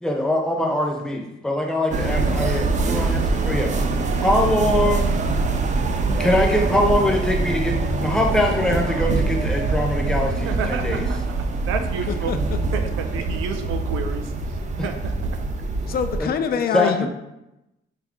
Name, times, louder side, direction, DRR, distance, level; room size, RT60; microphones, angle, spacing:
voice 1, 0.0-3.7 4.2-5.1 6.2-11.0 16.2-17.1, left 1 dB, 5° left, 1 dB, 0.6 m, -23 dB
sound 1, 1.9-16.2, right 3 dB, 40° right, 0.4 m, -24 dB
voice 2, 10.4-11.2 11.6-12.3 12.7-15.1, right 6 dB, 90° right, 6 dB, 0.5 m, -30 dB
voice 3, 12.1-12.6 15.9-17.1, left 7 dB, 50° left, 10 dB, 0.4 m, -25 dB
4.0 x 2.5 x 3.6 m, 0.89 s
cardioid pair, 90°, 20 cm